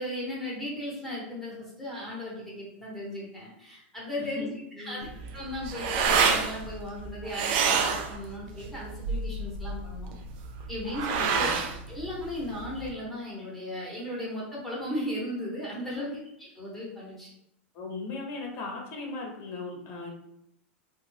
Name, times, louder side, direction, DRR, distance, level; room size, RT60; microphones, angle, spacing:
voice 1, 0.0-5.1 5.3-10.1 10.7-11.5 11.9-16.1 16.6-17.3, left 1 dB, 5° left, -7 dB, 1.1 m, -36 dB
voice 2, 4.2-5.2 11.2-11.7 15.9-16.1 17.7-20.1, left 3 dB, 40° left, 1 dB, 0.8 m, -38 dB
sound 1, 5.0-12.9, right 5 dB, 55° right, 0.4 m, -28 dB
2.5 x 2.2 x 3.3 m, 0.80 s
hypercardioid pair, 115°, 7 cm